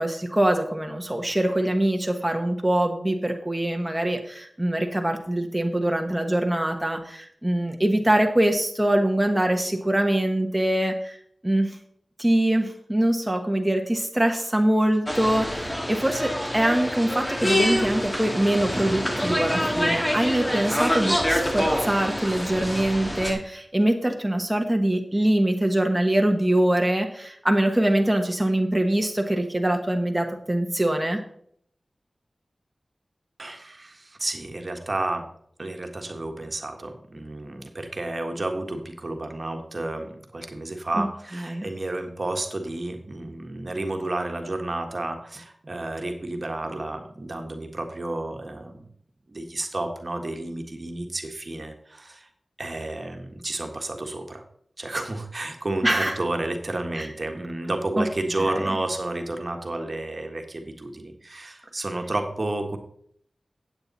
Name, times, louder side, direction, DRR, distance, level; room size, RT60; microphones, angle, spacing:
voice 1, 0.0-11.2 11.4-11.8 12.2-31.2 41.0-41.1 41.3-41.7 55.8-56.2 56.9-57.1 58.0-58.1 58.4-58.7, right 1 dB, 15° right, 3 dB, 1.3 m, -23 dB
sound 1, 15.1-23.3, equal, 15° left, 2.2 m, -26 dB
voice 2, 33.4-35.3 35.6-48.8 49.3-52.3 52.6-54.4 54.8-62.8, right 2 dB, 50° right, 4 dB, 1.5 m, -31 dB
8.9 x 8.5 x 4.1 m, 0.65 s
cardioid pair, 40°, 0 cm